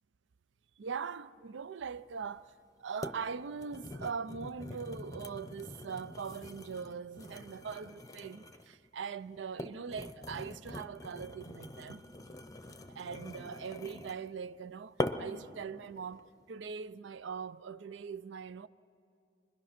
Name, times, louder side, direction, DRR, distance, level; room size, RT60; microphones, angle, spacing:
voice 1, 0.8-12.0 12.9-18.7, right 6 dB, 75° right, 0.4 m, -41 dB
sound 1, 2.2-2.3 3.0-3.2 3.6-8.8 9.4-14.3 15.0-15.4 16.0-16.2, left 1 dB, 20° left, 0.7 m, -43 dB
25.5 x 21.0 x 5.9 m
head